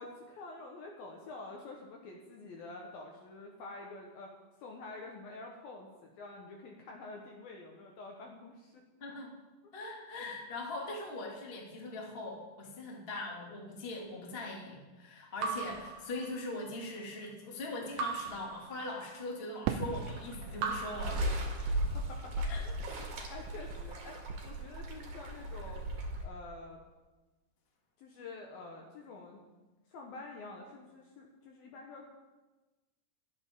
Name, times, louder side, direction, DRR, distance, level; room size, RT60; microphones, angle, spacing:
voice 1, 0.0-4.3 4.6-8.8 21.9-22.7 23.3-25.8 26.2-26.8 28.0-29.4 29.9-32.1, left 3 dB, 70° left, 0 dB, 2.5 m, -48 dB
voice 2, 9.0-9.3 9.7-21.2 21.7-21.8 22.5-22.6, left 2 dB, 30° left, -2 dB, 1.1 m, -41 dB
Raindrop / Drip, 15.4-16.8 18.0-19.3 20.6-22.0, right 4 dB, 70° right, 3.2 m, -39 dB
Fireworks, 19.7-24.0 24.3-25.1, right 8 dB, 85° right, 3.0 m, -42 dB
sound 1, 19.8-26.2, right 1 dB, 50° right, 2.7 m, -37 dB
22.5 x 9.0 x 3.7 m, 1.1 s
omnidirectional pair, 5.6 m